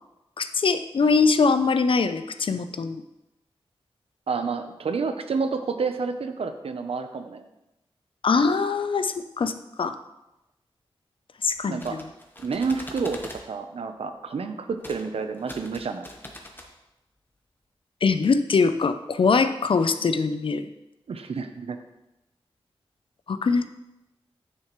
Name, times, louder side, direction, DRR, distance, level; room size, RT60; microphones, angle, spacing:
voice 1, 0.4-3.0 8.2-9.5 9.8-10.0 11.4-11.8 18.0-20.7 23.3-23.7, left 4 dB, 65° left, 10 dB, 0.5 m, -22 dB
voice 2, 4.3-7.4 11.7-12.0 12.4-16.1 21.1-21.8, right 4 dB, 80° right, 8 dB, 0.7 m, -29 dB
sound 1, 11.6-13.4 14.8-15.0 15.3-16.7, left 1 dB, 20° left, 1.1 m, -42 dB
9.9 x 6.5 x 3.1 m, 0.94 s
wide cardioid pair, 85°, 10 cm